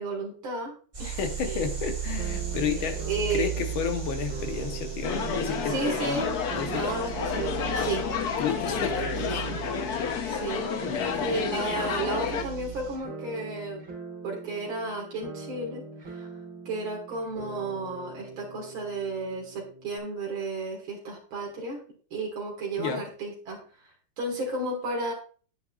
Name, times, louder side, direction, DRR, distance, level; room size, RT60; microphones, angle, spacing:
voice 1, 0.0-1.2 1.4-1.7 3.0-3.5 5.7-6.3 6.7-8.0 10.2-10.7 11.2-13.8 14.2-16.3 16.7-21.8 22.1-23.6 24.2-25.1, right 2 dB, 75° right, -2 dB, 2.7 m, -33 dB
sound 1, 0.9-13.0, right 9 dB, 30° right, 3.9 m, -36 dB
voice 2, 1.0-6.3 6.5-7.0 7.5-7.7 8.4-9.5 10.9-11.5 22.8-23.0, left 7 dB, 75° left, 6 dB, 1.9 m, -32 dB
sound 2, 2.2-20.0, right 3 dB, 60° right, 2.9 m, -43 dB
sound 3, 5.0-12.4, left 6 dB, 60° left, 1.2 m, -30 dB
9.4 x 8.9 x 2.4 m, 0.41 s
omnidirectional pair, 2.3 m